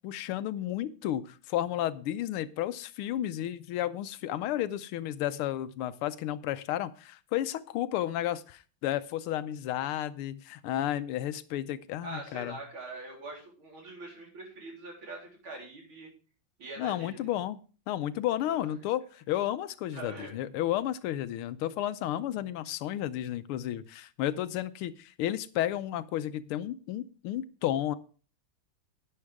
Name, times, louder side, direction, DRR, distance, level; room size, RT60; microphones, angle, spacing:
voice 1, 0.0-12.6 16.8-17.6 17.9-28.0, left 12 dB, 85° left, 13 dB, 1.6 m, -32 dB
voice 2, 12.0-16.1 16.6-17.3 18.4-18.6 19.9-20.4, right 2 dB, 70° right, -1 dB, 4.5 m, -43 dB
11.0 x 9.6 x 3.5 m, 0.38 s
omnidirectional pair, 2.4 m